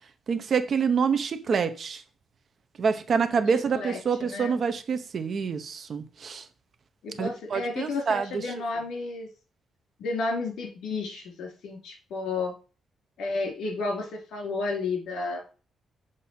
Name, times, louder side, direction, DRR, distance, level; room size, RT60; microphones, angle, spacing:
voice 1, 0.3-2.0 2.8-6.5 7.2-8.5, right 6 dB, 40° right, 0.8 m, -27 dB
voice 2, 3.7-4.6 7.0-9.3 10.0-12.5 13.2-15.4, left 3 dB, 75° left, 2.8 m, -32 dB
7.4 x 5.0 x 4.3 m
cardioid pair, 160°, 0 cm